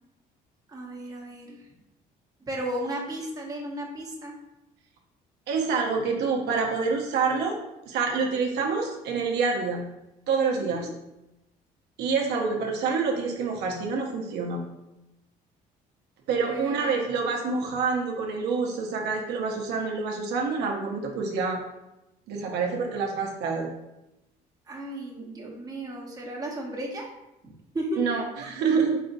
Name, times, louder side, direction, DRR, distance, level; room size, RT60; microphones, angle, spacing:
voice 1, 0.7-1.7 2.5-4.4 10.5-10.9 16.5-17.0 17.2-17.3 24.7-27.1 27.4-28.1, right 1 dB, 20° right, -2 dB, 0.9 m, -35 dB
voice 2, 5.5-7.6 7.9-9.8 10.3-10.9 12.0-14.6 16.3-21.6 22.3-23.7 28.0-29.0, right 5 dB, 80° right, 0 dB, 0.7 m, -27 dB
4.1 x 3.9 x 2.6 m, 0.92 s
cardioid pair, 110°, 17 cm